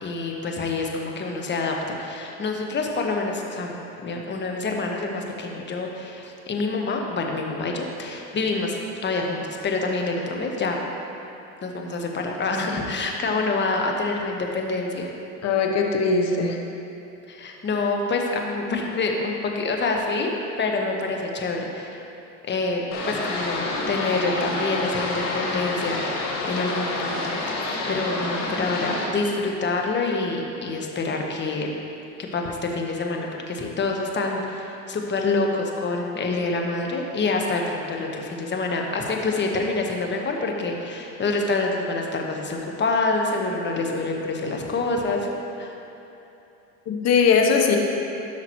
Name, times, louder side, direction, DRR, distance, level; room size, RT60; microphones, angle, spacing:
voice 1, 0.0-3.8 4.0-10.8 11.6-15.1 17.3-20.3 20.6-21.9 22.5-31.7 32.3-45.3 45.6-45.7, left 3 dB, 30° left, 1 dB, 1.2 m, -27 dB
voice 2, 15.4-16.6 46.9-47.8, left 5 dB, 45° left, 2 dB, 1.1 m, -20 dB
sound 1, 22.9-29.1, left 2 dB, 65° left, 1.7 m, -28 dB
13.0 x 5.8 x 3.1 m, 2.9 s
supercardioid pair, 90°, 37 cm